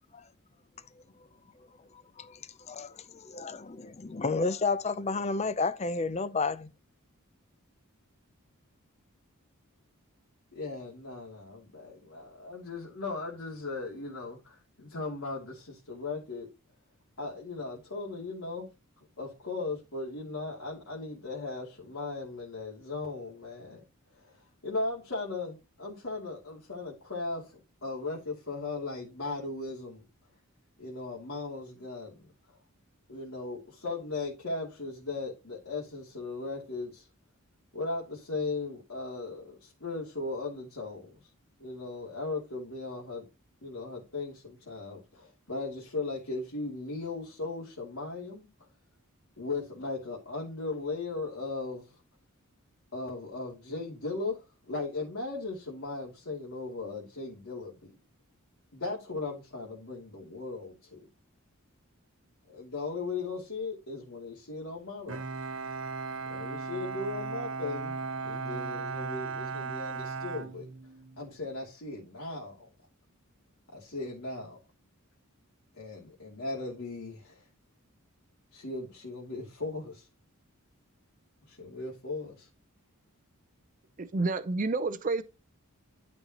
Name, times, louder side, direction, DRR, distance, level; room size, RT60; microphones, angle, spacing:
voice 1, 1.9-6.7, left 4 dB, 30° left, 0.5 m, -32 dB
voice 2, 10.5-16.5 17.2-18.7 19.2-23.8 24.1-30.0 30.8-32.6 33.1-37.1 37.7-41.3 41.6-43.2 43.6-48.5 49.4-52.0 52.9-58.0 58.7-61.1 62.5-65.2 66.3-68.0 68.2-70.7 71.2-72.7 73.7-74.6 75.8-77.4 78.5-80.1 81.5-82.5, left 3 dB, 65° left, 2.8 m, -37 dB
Bowed string instrument, 65.1-71.2, right 4 dB, 60° right, 1.1 m, -36 dB
voice 3, 84.0-85.2, right 3 dB, 35° right, 0.5 m, -29 dB
11.5 x 5.4 x 2.9 m
head